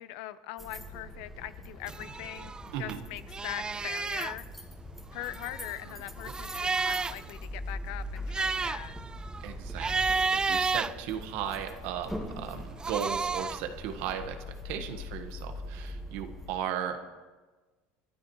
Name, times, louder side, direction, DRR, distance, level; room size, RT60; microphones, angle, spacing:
voice 1, 0.0-4.5 5.1-9.0, left 14 dB, 80° left, 14 dB, 0.8 m, -41 dB
sound 1, 0.6-16.5, left 1 dB, ahead, 2.1 m, -43 dB
sound 2, 1.9-3.0 3.3-4.4 5.1-7.3 7.7-7.8 8.1-11.7 12.6-13.7, right 4 dB, 20° right, 0.4 m, -32 dB
voice 2, 9.4-14.4 14.6-17.0, right 9 dB, 75° right, 6 dB, 1.5 m, -36 dB
29.5 x 12.0 x 3.2 m, 1.3 s
supercardioid pair, 115°, 5 cm